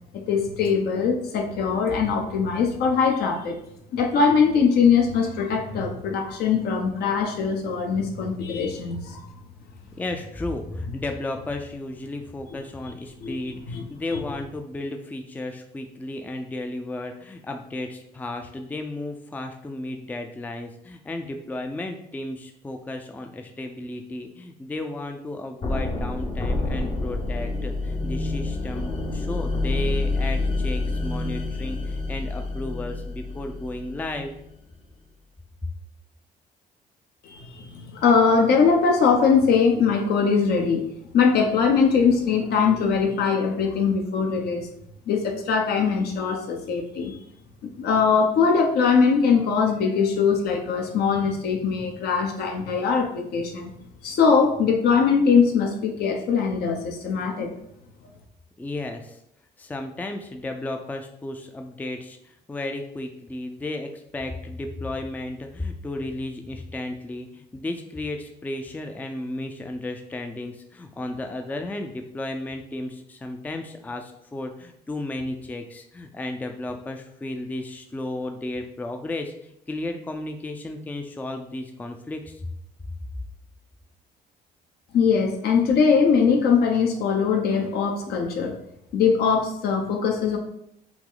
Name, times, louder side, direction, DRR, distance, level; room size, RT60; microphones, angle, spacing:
voice 1, 0.1-3.6 3.9-9.2 13.2-13.4 13.7-13.8 14.1-14.2 37.2-40.8 41.1-44.7 45.1-47.1 47.8-53.7 54.0-57.6 84.9-88.6 88.9-90.4, left 5 dB, 70° left, 3 dB, 0.9 m, -21 dB
voice 2, 10.0-34.4 58.6-59.2 59.6-82.5, left 2 dB, 10° left, 5 dB, 0.4 m, -34 dB
sound 1, 25.6-34.5, left 2 dB, 35° left, 0.8 m, -28 dB
5.8 x 2.1 x 3.9 m, 0.76 s
cardioid pair, 110°, 17 cm